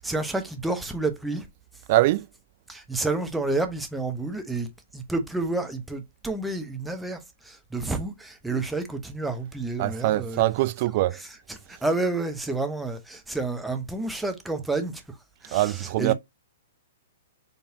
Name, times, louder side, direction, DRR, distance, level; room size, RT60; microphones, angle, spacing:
voice 1, 0.0-1.5 2.7-7.2 7.4-10.4 11.7-15.0 15.4-16.1, right 3 dB, 5° right, 0.8 m, -29 dB
voice 2, 1.9-2.3 9.8-11.2 15.5-16.1, right 16 dB, 45° right, 0.3 m, -23 dB
4.5 x 3.3 x 2.7 m
figure-of-eight pair, 115°, 0 cm